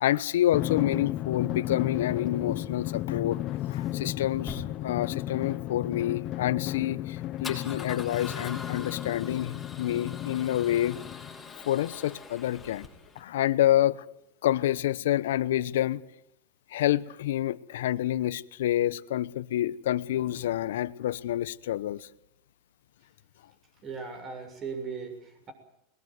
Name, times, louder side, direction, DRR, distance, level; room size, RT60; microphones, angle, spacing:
voice 1, 0.0-3.4 3.7-11.0 11.6-12.9 13.2-14.1 14.4-16.0 16.7-22.1, left 13 dB, 80° left, 0.9 m, -28 dB
Drum, 0.5-11.6, left 14 dB, 45° left, 0.8 m, -34 dB
Male speech man speaking / Car / Engine starting, 2.1-13.2, left 4 dB, 10° left, 6.4 m, -45 dB
voice 2, 23.8-25.5, right 5 dB, 35° right, 7.2 m, -38 dB
20.5 x 20.5 x 9.3 m
hypercardioid pair, 110°, 0 cm